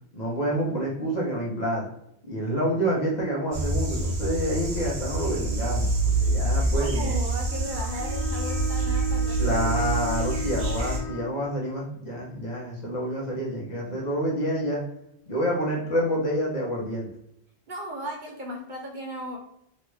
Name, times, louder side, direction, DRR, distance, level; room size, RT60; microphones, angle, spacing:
voice 1, 0.1-1.9 2.2-5.9 6.2-7.1 9.4-14.8 15.3-17.1, equal, 45° left, -4 dB, 1.0 m, -28 dB
sound 1, 3.5-11.0, right 2 dB, 85° right, 1.0 m, -26 dB
voice 2, 6.7-9.8 17.7-19.4, equal, 55° right, 0 dB, 0.7 m, -36 dB
Bowed string instrument, 7.4-11.4, left 1 dB, 5° left, 1.3 m, -35 dB
3.1 x 2.5 x 3.2 m, 0.75 s
omnidirectional pair, 1.1 m